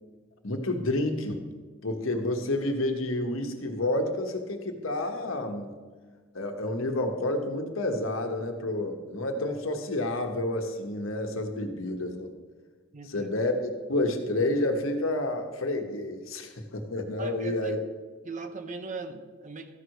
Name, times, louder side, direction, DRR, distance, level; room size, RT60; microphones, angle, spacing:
voice 1, 0.4-1.4 1.8-5.7 6.3-12.3 13.0-17.8, left 1 dB, 80° left, 4 dB, 1.2 m, -29 dB
voice 2, 12.9-13.3 17.2-17.7 18.2-19.8, right 3 dB, 40° right, 7 dB, 0.8 m, -39 dB
13.5 x 4.8 x 6.4 m, 1.4 s
head